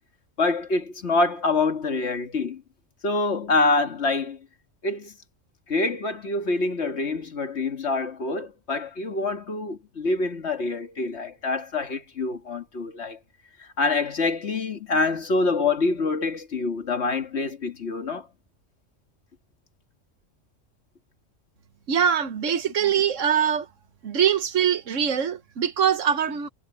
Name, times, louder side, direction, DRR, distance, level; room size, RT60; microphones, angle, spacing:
voice 1, 0.4-2.6 3.0-4.4 4.8-5.1 5.7-13.2 13.6-18.3, left 3 dB, 60° left, 1.9 m, -26 dB
voice 2, 21.9-23.7 24.0-26.5, right 8 dB, 80° right, 1.4 m, -23 dB
omnidirectional pair, 1.3 m